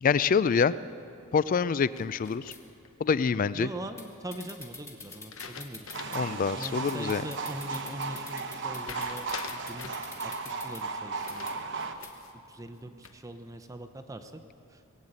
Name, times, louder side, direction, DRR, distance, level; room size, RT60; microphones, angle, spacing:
voice 1, 0.0-0.7 1.3-2.5 3.0-3.7 6.1-7.2, left 6 dB, 40° left, 17 dB, 0.3 m, -26 dB
sound 1, 2.0-2.9 5.1-6.3 6.7-6.8 8.8-10.1 11.2-12.3 12.8-13.4, left 6 dB, 70° left, 0.9 m, -44 dB
sound 2, 2.1-2.6 4.0-4.1 4.3-6.2 6.6-10.8 11.3-11.5 12.0-12.1, left 2 dB, 15° left, 1.5 m, -45 dB
voice 2, 3.5-9.9 10.2-10.3 10.6-11.5 12.5-14.3 14.7-14.8, right 1 dB, 15° right, 8 dB, 0.6 m, -42 dB
sound 3, 5.9-11.9, right 4 dB, 60° right, 0.9 m, -36 dB
20.0 x 8.1 x 8.8 m, 2.5 s
head